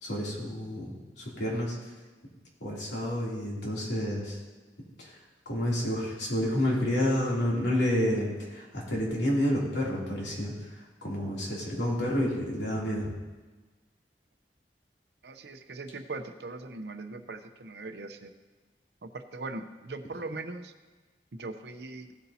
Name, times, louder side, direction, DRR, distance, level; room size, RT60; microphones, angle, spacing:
voice 1, 0.0-1.9 2.6-4.4 5.0-5.2 5.4-13.1, left 1 dB, 85° left, -4 dB, 3.0 m, -29 dB
voice 2, 15.2-18.3 19.0-20.7 21.3-22.1, right 3 dB, 75° right, 7 dB, 0.8 m, -40 dB
16.0 x 8.2 x 2.8 m, 1.3 s
head